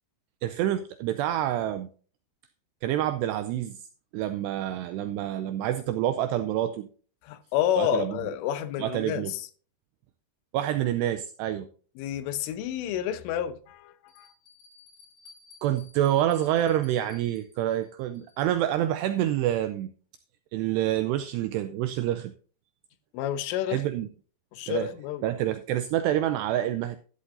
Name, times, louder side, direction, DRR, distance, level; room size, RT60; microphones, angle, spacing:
voice 1, 0.4-1.9 2.8-3.9 4.1-6.9 7.8-8.2 8.8-9.3 10.5-11.7 15.6-19.9 20.5-22.3 23.7-24.1 24.7-24.9 25.2-27.0, right 12 dB, 85° right, 2.4 m, -27 dB
voice 2, 7.2-9.5 12.0-14.3 23.1-23.8 24.5-25.2, left 11 dB, 90° left, 3.4 m, -30 dB
Bell, 14.1-18.6, left 5 dB, 55° left, 8.1 m, -56 dB
13.0 x 11.5 x 2.6 m
omnidirectional pair, 5.5 m